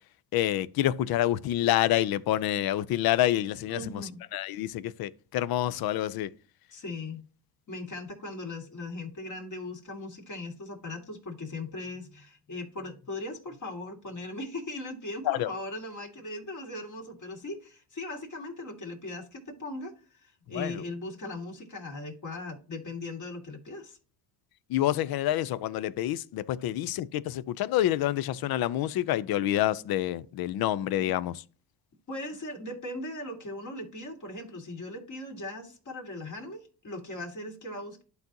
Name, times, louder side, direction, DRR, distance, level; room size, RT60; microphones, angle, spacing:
voice 1, 0.3-6.3 15.3-15.5 20.5-20.8 24.7-31.4, left 13 dB, 65° left, 0.6 m, -28 dB
voice 2, 3.7-4.2 6.7-7.3 7.7-24.0 32.1-38.0, left 2 dB, 45° left, 2.2 m, -39 dB
11.5 x 4.0 x 2.8 m
supercardioid pair, 80°, 40 cm